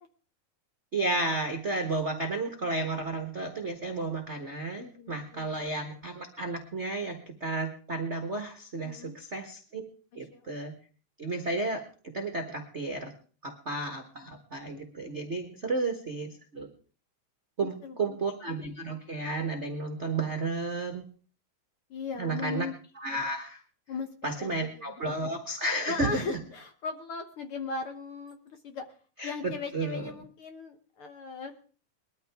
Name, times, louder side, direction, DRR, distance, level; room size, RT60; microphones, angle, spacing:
voice 1, 0.9-9.8 10.1-10.7 11.2-11.8 12.1-13.1 13.4-16.7 17.6-21.0 22.2-22.7 22.9-23.6 24.2-26.4 29.2-29.3 29.7-30.1, right 2 dB, 45° right, 5 dB, 0.8 m, -32 dB
voice 2, 5.0-5.6 8.8-9.1 10.3-10.6 17.6-18.2 21.9-22.7 23.9-24.9 25.9-28.9 29.2-31.5, left 4 dB, 60° left, 7 dB, 1.6 m, -38 dB
21.0 x 13.0 x 3.5 m, 0.40 s
omnidirectional pair, 3.4 m